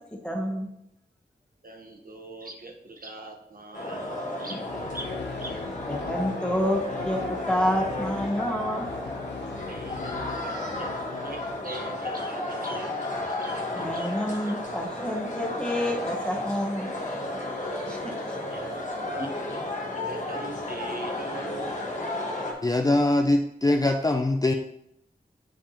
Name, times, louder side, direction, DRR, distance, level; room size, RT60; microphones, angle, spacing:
voice 1, 0.1-0.7 5.9-8.9 13.7-16.9 17.9-18.3, equal, 5° left, -2 dB, 1.2 m, -28 dB
voice 2, 1.6-4.6 4.9-5.6 9.7-14.4 17.9-18.0 18.5-19.6 19.9-21.8, right 2 dB, 55° right, 1 dB, 1.0 m, -42 dB
sound 1, 3.7-22.5, left 2 dB, 45° left, 1.3 m, -33 dB
sound 2, 4.6-12.1, left 5 dB, 90° left, 0.4 m, -41 dB
voice 3, 22.6-24.5, left 2 dB, 20° left, 4 dB, 0.4 m, -22 dB
9.8 x 3.5 x 2.8 m, 0.78 s
wide cardioid pair, 85°, 17 cm